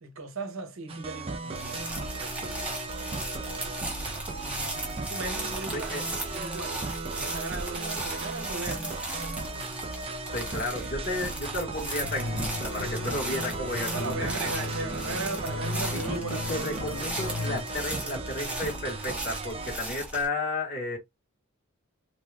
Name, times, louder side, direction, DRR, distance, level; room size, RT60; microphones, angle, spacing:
voice 1, 0.0-2.7 3.3-6.8 7.1-9.8 13.9-17.0, right 3 dB, 65° right, 0.7 m, -38 dB
sound 1, 0.9-19.8, right 3 dB, 25° right, 0.4 m, -37 dB
sound 2, 1.5-20.3, right 1 dB, 5° right, 0.7 m, -37 dB
voice 2, 5.7-6.1 10.3-14.3 15.9-21.0, left 2 dB, 45° left, 1.3 m, -33 dB
sound 3, 12.0-17.6, left 3 dB, 85° left, 0.6 m, -36 dB
2.6 x 2.2 x 3.3 m
head